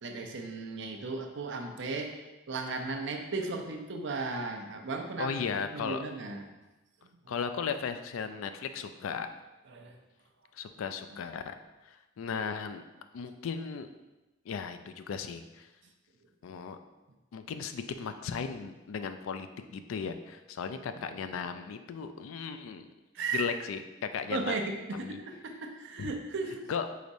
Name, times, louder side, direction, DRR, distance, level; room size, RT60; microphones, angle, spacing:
voice 1, 0.0-5.3 5.7-6.4 9.7-10.0 21.1-21.3 23.1-23.4 24.3-26.7, right 3 dB, 60° right, 4 dB, 0.5 m, -36 dB
voice 2, 5.2-6.0 7.3-9.3 10.5-11.5 11.8-12.8 13.1-13.9 14.5-15.7 16.4-16.8 17.3-22.9 23.3-23.8 24.1-24.6 24.9-25.2 26.0-26.1 26.7-26.9, left 6 dB, 80° left, 8 dB, 0.3 m, -36 dB
4.9 x 4.0 x 2.6 m, 1.1 s
head